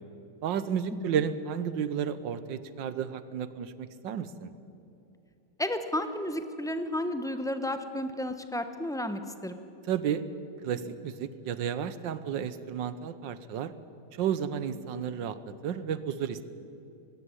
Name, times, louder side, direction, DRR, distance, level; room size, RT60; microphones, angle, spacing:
voice 1, 0.4-4.5 9.9-10.2 10.6-13.7 14.2-16.4, right 8 dB, 85° right, 13 dB, 1.6 m, -32 dB
voice 2, 5.6-9.6, left 1 dB, 5° left, 8 dB, 0.5 m, -32 dB
20.0 x 15.5 x 9.8 m, 2.7 s
omnidirectional pair, 2.0 m